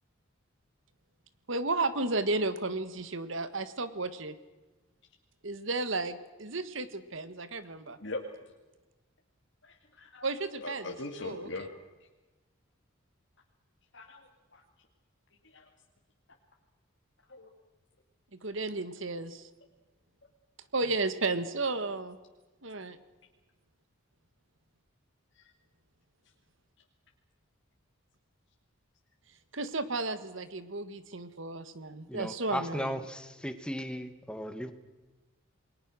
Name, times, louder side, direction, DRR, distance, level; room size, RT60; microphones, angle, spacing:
voice 1, 1.5-4.4 5.4-8.0 10.2-11.7 18.4-19.5 20.7-22.2 22.6-23.0 29.5-33.0, right 3 dB, 65° right, 12 dB, 1.7 m, -33 dB
voice 2, 9.6-10.3 10.6-11.7 13.9-14.6 15.4-15.6 17.3-17.5 25.4-25.5, left 2 dB, 60° left, 1 dB, 2.3 m, -41 dB
voice 3, 32.1-34.7, equal, 5° left, 9 dB, 1.6 m, -36 dB
28.5 x 21.5 x 6.3 m, 1.2 s
head